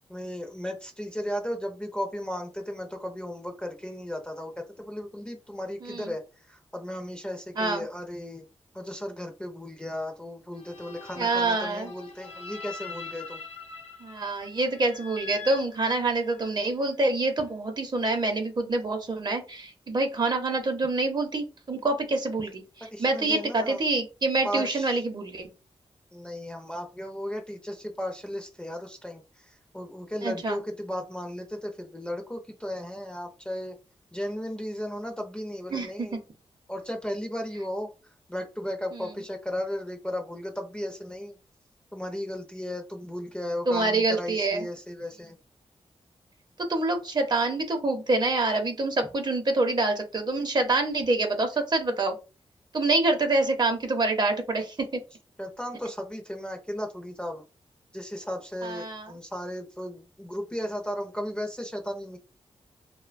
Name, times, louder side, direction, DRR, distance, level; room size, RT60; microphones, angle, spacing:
voice 1, 0.1-8.4 8.7-13.4 22.8-23.8 24.4-25.0 26.1-33.8 34.1-36.2 36.7-41.4 41.9-45.4 55.4-57.4 57.9-62.2, equal, 10° left, 4 dB, 0.5 m, -35 dB
sound 1, 10.5-16.6, left 5 dB, 85° left, 0.5 m, -43 dB
voice 2, 11.2-11.9 14.0-22.6 23.0-25.5 30.2-30.6 35.7-36.1 43.7-44.7 46.6-52.2 52.7-54.9 58.6-59.1, right 2 dB, 45° right, 5 dB, 0.6 m, -26 dB
2.6 x 2.1 x 2.5 m, 0.31 s
wide cardioid pair, 85°, 11 cm